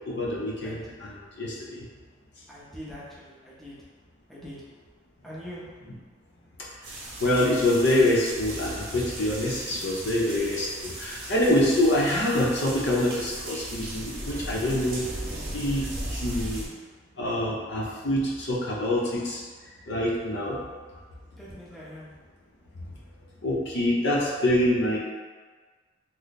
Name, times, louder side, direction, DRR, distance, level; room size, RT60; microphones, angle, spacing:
voice 1, 0.0-1.9 7.2-15.0 15.5-16.6 17.2-19.4 19.9-20.6 23.4-25.0, left 1 dB, 65° left, -4 dB, 0.7 m, -25 dB
voice 2, 2.5-3.8 4.3-4.6 5.2-5.7 21.4-22.1, equal, ahead, -8 dB, 0.6 m, -42 dB
sound 1, 6.8-16.7, right 1 dB, 50° right, 0.8 m, -37 dB
3.2 x 2.1 x 4.0 m, 1.5 s
head